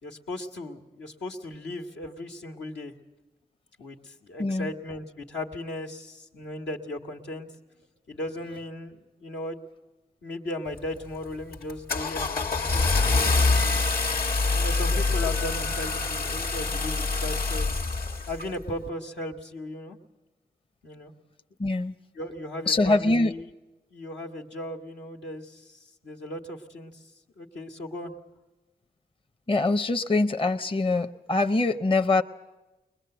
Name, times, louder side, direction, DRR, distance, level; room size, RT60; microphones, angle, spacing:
voice 1, 0.0-2.9 3.8-7.5 8.1-9.6 10.2-13.8 14.5-17.7 18.3-20.0 20.8-21.1 22.1-23.5 23.9-27.0 27.4-28.1, left 1 dB, 85° left, 1 dB, 1.7 m, -37 dB
voice 2, 4.4-4.7 21.6-21.9 22.7-23.3 29.5-32.2, left 2 dB, 30° left, 8 dB, 0.7 m, -23 dB
Car / Engine starting, 10.7-11.1 11.5-18.5, left 3 dB, 60° left, 1.3 m, -25 dB
21.5 x 20.5 x 7.9 m, 1.1 s
cardioid pair, 45°, 18 cm